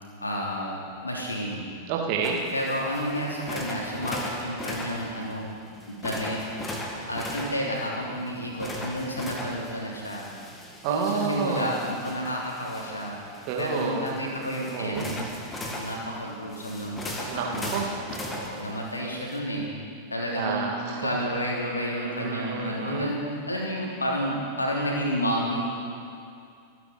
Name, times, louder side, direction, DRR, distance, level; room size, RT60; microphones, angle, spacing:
voice 1, 0.2-1.7 2.5-5.5 5.9-6.4 7.1-10.3 10.9-13.2 13.6-15.3 15.8-17.8 18.2-19.7 20.1-25.6, equal, 80° left, -3 dB, 2.9 m, -30 dB
voice 2, 1.9-2.4 10.8-11.7 13.4-14.2 14.7-15.1 17.3-17.9 20.3-21.1 21.9-23.1, right 5 dB, 45° right, 0 dB, 2.2 m, -29 dB
sound 1, 2.2-19.4, left 1 dB, 15° left, 1.9 m, -38 dB
25.5 x 9.4 x 4.1 m, 2.4 s
figure-of-eight pair, 90°, 0 cm